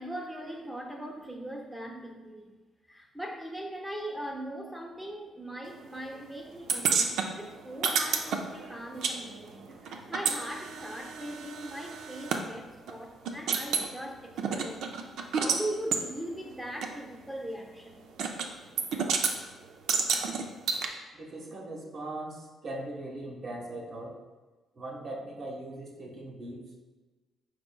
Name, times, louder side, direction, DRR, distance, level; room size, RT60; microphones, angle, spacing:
voice 1, 0.0-2.5 2.9-14.8 15.3-18.1, right 1 dB, 5° right, 2 dB, 0.7 m, -40 dB
sound 1, 6.7-9.2 9.4-12.4 12.9-13.0 13.3-13.9 14.4-15.6 15.9-16.0 16.8-16.9 18.2-18.5 18.8-19.4 19.9-20.9, right 5 dB, 80° right, 0.4 m, -30 dB
voice 2, 21.2-24.2 24.8-26.8, right 1 dB, 55° right, -1 dB, 1.1 m, -40 dB
4.9 x 4.8 x 2.2 m, 1.2 s
cardioid pair, 90°, 0 cm